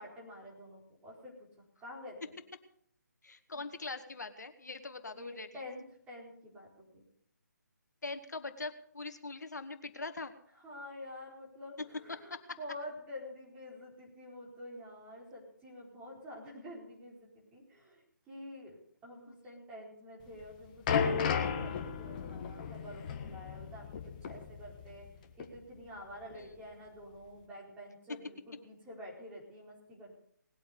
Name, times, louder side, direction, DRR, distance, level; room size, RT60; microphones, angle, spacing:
voice 1, 0.0-1.5 1.8-2.3 3.5-3.6 5.1-7.0 10.6-25.1 25.4-30.2, left 1 dB, 10° right, -3 dB, 4.5 m, -48 dB
voice 2, 3.2-5.6 8.0-10.3 11.8-12.6 19.3-19.6 26.3-26.5, left 3 dB, 65° left, 9 dB, 1.9 m, -42 dB
sound 1, 20.3-25.1 25.4-25.6 26.3-26.4, left 6 dB, 25° left, 1.6 m, -34 dB
19.5 x 8.8 x 6.8 m, 0.66 s
figure-of-eight pair, 145°, 10 cm